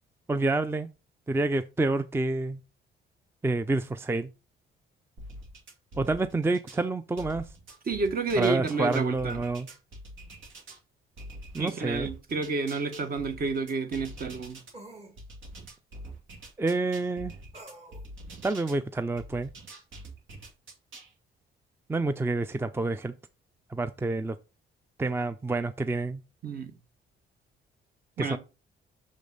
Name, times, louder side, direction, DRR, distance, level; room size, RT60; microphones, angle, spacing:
voice 1, 0.3-0.9 1.3-2.6 3.4-4.3 6.0-7.5 8.4-9.7 11.5-12.1 16.6-17.3 18.4-19.5 21.9-23.1 23.7-24.4 25.0-26.2 28.2-28.4, right 3 dB, 10° right, 0.5 m, -28 dB
sound 1, 5.2-6.8 7.2-10.8 11.2-14.7 15.2-18.8 19.2-21.1, right 1 dB, 75° right, 2.3 m, -45 dB
voice 2, 7.8-9.4 11.6-14.6 26.4-26.7 28.2-28.4, right 4 dB, 50° right, 1.5 m, -30 dB
sound 2, 12.4-12.5 14.7-15.2 17.5-18.1, right 1 dB, 35° right, 1.9 m, -47 dB
6.5 x 5.2 x 4.0 m
cardioid pair, 90°, 20 cm